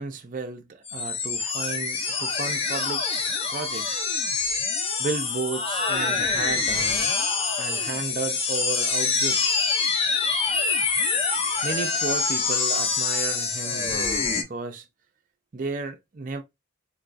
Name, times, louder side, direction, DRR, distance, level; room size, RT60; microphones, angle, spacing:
voice 1, 0.0-3.1 3.5-4.0 5.0-7.1 7.5-9.7 11.6-14.8 15.5-16.4, right 4 dB, 40° right, 0.4 m, -33 dB
sound 1, 0.9-14.4, left 4 dB, 30° left, 0.5 m, -25 dB
3.8 x 2.3 x 2.5 m
head